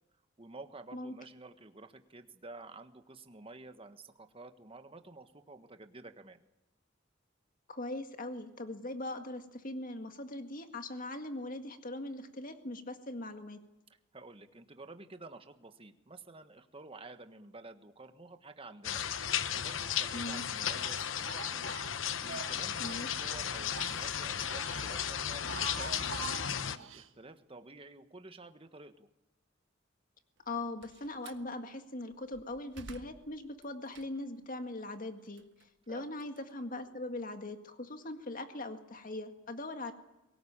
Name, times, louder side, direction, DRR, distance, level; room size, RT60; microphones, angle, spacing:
voice 1, 0.4-6.4 14.1-19.3 19.5-21.6 22.2-29.1 35.9-36.1, right 2 dB, 30° right, 8 dB, 1.5 m, -51 dB
voice 2, 7.7-13.6 20.1-20.4 22.8-23.2 30.5-35.4 35.9-39.9, left 2 dB, 45° left, 7 dB, 2.0 m, -40 dB
sound 1, 18.8-26.8, left 8 dB, 75° left, 0.9 m, -35 dB
Speech, 19.2-19.9 20.2-23.1 23.4-24.9 25.3-27.1, right 6 dB, 80° right, 1.4 m, -47 dB
Slam, 30.4-31.5 32.1-34.4 34.8-37.2, right 3 dB, 65° right, 1.4 m, -55 dB
23.0 x 19.0 x 8.8 m, 0.95 s
head